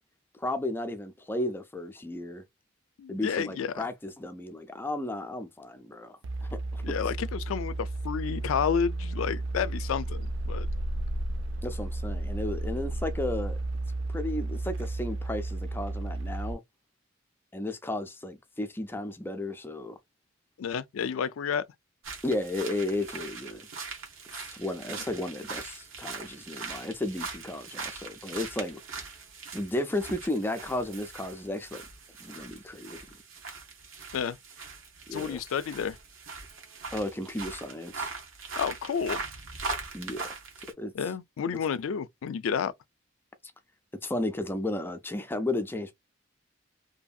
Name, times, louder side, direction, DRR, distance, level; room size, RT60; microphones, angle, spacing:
voice 1, 0.4-2.4 3.1-6.8 11.6-13.6 14.1-16.6 17.5-19.9 22.2-23.7 24.3-28.8 29.5-31.8 32.2-33.1 35.1-35.4 36.9-38.1 39.9-40.2 40.8-40.9 44.0-45.9, left 1 dB, 10° left, 0.4 m, -34 dB
voice 2, 3.0-3.9 6.8-10.7 20.6-21.6 34.1-34.4 35.1-36.0 38.6-39.2 40.9-42.7, left 7 dB, 90° left, 0.4 m, -30 dB
sound 1, 6.2-16.5, right 2 dB, 60° right, 0.3 m, -33 dB
sound 2, 22.0-40.7, right 4 dB, 85° right, 1.0 m, -41 dB
2.7 x 2.6 x 2.3 m
head